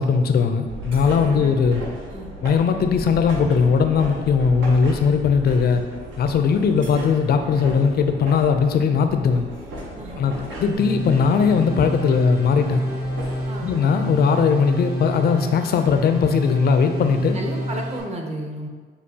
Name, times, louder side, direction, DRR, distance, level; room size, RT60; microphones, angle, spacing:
voice 1, 0.0-1.8 2.4-5.8 6.2-9.5 10.2-10.3 10.6-12.8 13.6-17.4, left 5 dB, 50° left, 7 dB, 0.4 m, -19 dB
sound 1, 0.7-13.8, right 1 dB, 85° right, 0.9 m, -36 dB
voice 2, 1.2-1.6 2.1-2.3 10.0-10.4 13.4-13.8 17.3-18.7, right 1 dB, 35° right, 2 dB, 0.7 m, -33 dB
sound 2, 10.7-18.0, equal, 55° right, 1.3 m, -28 dB
6.5 x 2.3 x 2.7 m, 1.5 s
cardioid pair, 90°, 20 cm